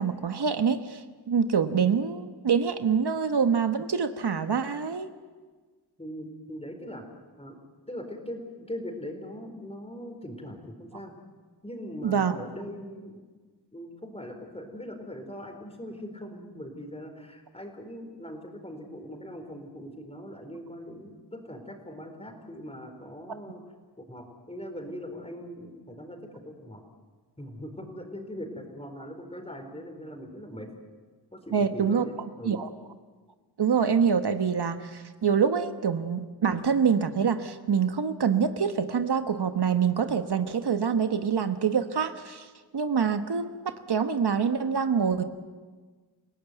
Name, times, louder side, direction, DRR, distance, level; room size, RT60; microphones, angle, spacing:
voice 1, 0.0-5.1 12.0-12.4 31.5-32.0 32.4-32.7 33.6-45.2, right 6 dB, 70° right, 9 dB, 1.3 m, -25 dB
voice 2, 6.0-7.1 7.4-7.6 7.9-11.1 11.6-13.2 13.7-23.6 24.0-26.2 26.4-26.8 27.4-30.7 31.3-32.6, equal, 15° left, 4 dB, 4.4 m, -41 dB
28.5 x 17.5 x 9.2 m, 1.4 s
wide cardioid pair, 90°, 41 cm